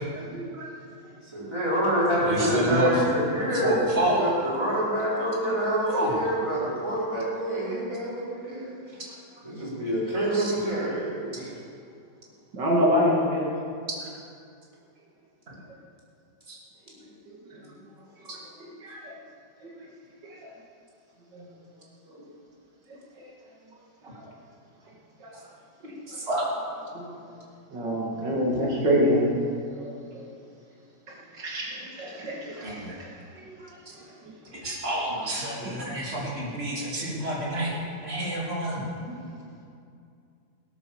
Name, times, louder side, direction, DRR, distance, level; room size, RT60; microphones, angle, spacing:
voice 1, 0.2-0.7 12.5-13.5 17.3-17.7 18.2-19.1 19.6-19.7 20.2-20.5 22.1-22.3 22.9-23.3 24.2-24.3 25.2-25.3 25.8-25.9 26.9-27.1 27.7-29.3 29.8-30.2 31.3-33.7 34.0-34.3 35.6-35.7 37.1-37.3 37.7-37.8 38.8-39.2, equal, 90° right, -4 dB, 3.0 m, -28 dB
voice 2, 1.2-9.0 9.4-11.5, equal, 15° right, -8 dB, 4.8 m, -27 dB
voice 3, 2.2-2.9 3.6-4.3 5.9-6.2 10.3-10.5 16.5-16.6 26.1-26.4 32.6-32.9 34.5-37.7 38.0-38.8, right 1 dB, 35° right, -5 dB, 3.4 m, -28 dB
18.5 x 8.3 x 7.1 m, 2.4 s
omnidirectional pair, 1.9 m